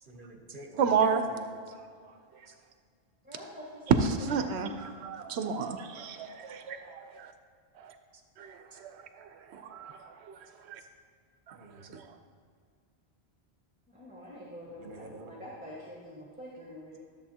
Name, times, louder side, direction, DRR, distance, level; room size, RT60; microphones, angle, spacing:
voice 1, 0.0-1.6 2.5-2.6 8.1-8.2 8.7-8.8 10.8-10.9 11.5-12.0 14.7-15.4, right 2 dB, 55° right, 4 dB, 1.0 m, -48 dB
voice 2, 0.8-1.2 3.9-7.3 7.8-7.9 8.4-10.4 10.7-10.8 11.5-11.6 11.9-12.1, right 6 dB, 85° right, 8 dB, 0.9 m, -31 dB
voice 3, 3.2-3.8 13.9-17.0, equal, 10° right, -6 dB, 1.4 m, -46 dB
13.0 x 7.4 x 2.8 m, 2.1 s
omnidirectional pair, 1.1 m